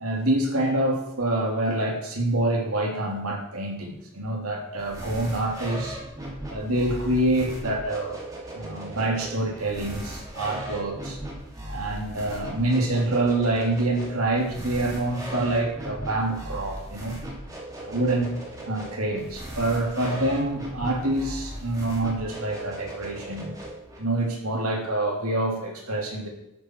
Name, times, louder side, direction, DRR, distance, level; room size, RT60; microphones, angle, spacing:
voice 1, 0.0-6.0 6.5-8.2 8.5-11.2 11.7-17.2 17.8-18.3 18.7-23.5 24.0-26.3, right 2 dB, 80° right, 1 dB, 3.0 m, -26 dB
sound 1, 4.8-24.0, right 1 dB, 15° right, 2.9 m, -38 dB
13.0 x 9.5 x 4.7 m, 0.85 s
head